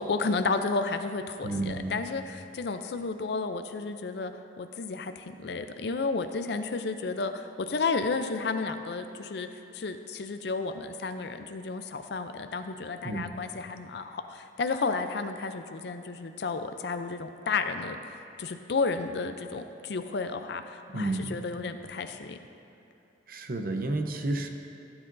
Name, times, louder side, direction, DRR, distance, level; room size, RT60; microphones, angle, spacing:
voice 1, 0.0-4.3 4.6-9.5 9.7-22.4, left 4 dB, 65° left, 8 dB, 0.5 m, -32 dB
voice 2, 1.4-1.9 13.0-13.3 20.9-21.4 23.3-24.5, right 2 dB, 55° right, 5 dB, 0.7 m, -31 dB
16.0 x 8.9 x 2.6 m, 3.0 s
head